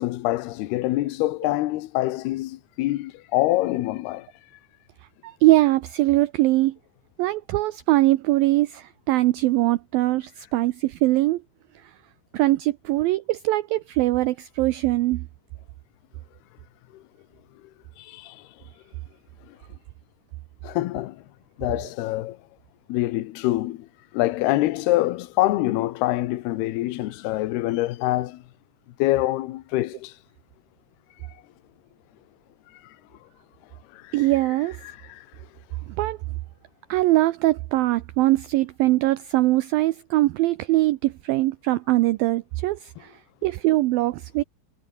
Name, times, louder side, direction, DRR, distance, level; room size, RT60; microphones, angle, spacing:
voice 1, 0.0-4.3 16.9-17.0 18.0-18.5 19.5-19.6 20.6-21.2 21.6-22.4 22.9-23.9 24.1-28.4 29.0-30.1 33.9-34.1 34.8-35.3, left 17 dB, 75° left, 2.9 m, -25 dB
voice 2, 5.2-6.8 7.2-11.4 11.8-11.9 12.3-15.3 34.1-34.8 35.9-36.2 36.9-44.4, right 18 dB, 85° right, 2.1 m, -22 dB
omnidirectional pair, 5.0 m